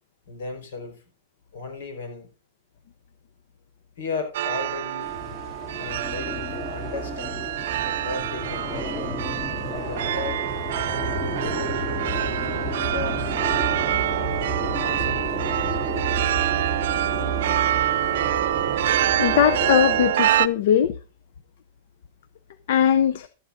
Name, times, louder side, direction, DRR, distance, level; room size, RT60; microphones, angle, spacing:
voice 1, 0.3-1.0 1.5-2.3 4.0-5.2 5.8-7.5 8.0-9.1 9.7-10.5 11.2-15.4, left 3 dB, 70° left, 5.0 m, -36 dB
sound 1, 4.3-20.5, right 12 dB, 60° right, 0.6 m, -26 dB
sound 2, 5.0-20.1, equal, 20° left, 2.6 m, -32 dB
voice 2, 19.2-21.0 22.7-23.3, left 9 dB, 55° left, 0.7 m, -20 dB
16.0 x 12.5 x 2.6 m
supercardioid pair, 175°, 0 cm